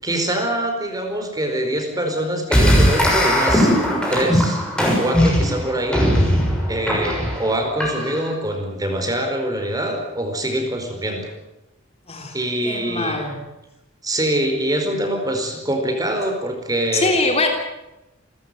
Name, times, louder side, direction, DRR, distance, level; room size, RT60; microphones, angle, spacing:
voice 1, 0.0-3.7 4.1-4.6 5.0-6.1 6.7-11.3 12.3-13.2 14.0-17.2, right 1 dB, 20° right, 4 dB, 4.9 m, -24 dB
sound 1, 2.5-8.3, equal, 5° left, 6.5 m, -19 dB
voice 2, 12.6-13.4 16.9-17.5, left 2 dB, 30° left, 3 dB, 3.3 m, -22 dB
29.5 x 14.0 x 9.4 m, 0.95 s
head